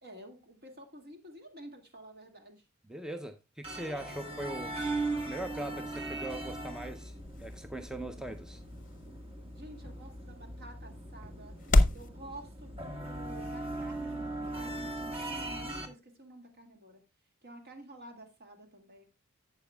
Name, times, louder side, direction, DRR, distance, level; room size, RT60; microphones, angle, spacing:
voice 1, 0.0-2.6 9.5-11.6 11.9-17.0 17.4-19.0, right 1 dB, 50° right, 2.0 m, -50 dB
voice 2, 2.9-4.8 5.3-8.6, right 1 dB, 5° right, 0.5 m, -41 dB
sound 1, 3.6-15.9, right 2 dB, 30° right, 1.6 m, -39 dB
sound 2, 5.8-12.1, left 2 dB, 40° left, 0.7 m, -33 dB
11.5 x 8.0 x 2.2 m
head